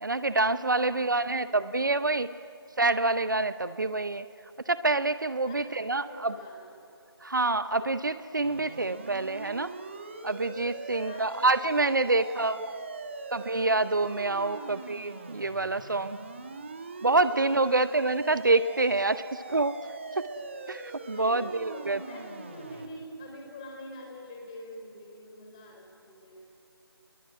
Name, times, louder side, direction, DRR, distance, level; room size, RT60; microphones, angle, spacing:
voice 1, 0.0-2.3 2.8-4.2 4.7-6.3 7.2-9.7 10.2-12.7 13.3-16.2 17.0-19.8 20.1-20.3 20.7-22.0, right 3 dB, 50° right, 14 dB, 0.8 m, -27 dB
voice 2, 0.8-1.4 5.4-6.7 10.9-11.7 12.3-12.6 14.5-14.7 17.6-18.0 21.1-26.4, left 1 dB, 15° left, 0 dB, 4.0 m, -46 dB
sound 1, 8.4-22.9, right 3 dB, 30° right, 1.5 m, -42 dB
27.0 x 22.0 x 9.6 m, 2.6 s
figure-of-eight pair, 165°, 13 cm